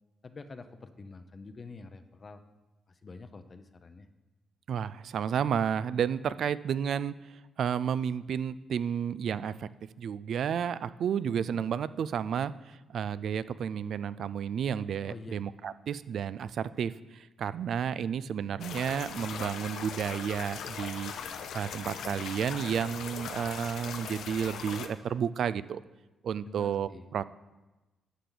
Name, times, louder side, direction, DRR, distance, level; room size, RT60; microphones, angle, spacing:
voice 1, 0.2-2.4 2.9-4.1 15.1-15.4 26.5-27.0, left 3 dB, 40° left, 9 dB, 0.6 m, -47 dB
voice 2, 4.7-9.7 10.0-21.1 21.5-25.8 26.2-27.2, right 8 dB, 70° right, 16 dB, 0.3 m, -32 dB
sound 1, 18.6-24.9, left 7 dB, 80° left, 0.7 m, -40 dB
11.5 x 6.6 x 3.9 m, 1.1 s
cardioid pair, 75°, 0 cm